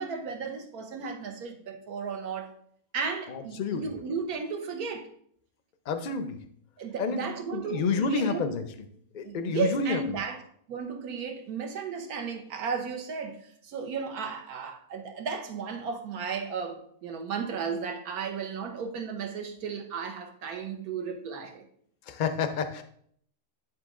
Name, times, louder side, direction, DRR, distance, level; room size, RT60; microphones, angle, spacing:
voice 1, 0.0-2.5 2.9-5.1 6.8-8.4 9.2-21.6, right 5 dB, 80° right, 1.4 m, -34 dB
voice 2, 3.3-3.8 5.9-6.4 7.0-8.6 9.1-10.0 22.1-22.8, left 5 dB, 55° left, 0.5 m, -29 dB
9.7 x 4.0 x 3.6 m
omnidirectional pair, 1.6 m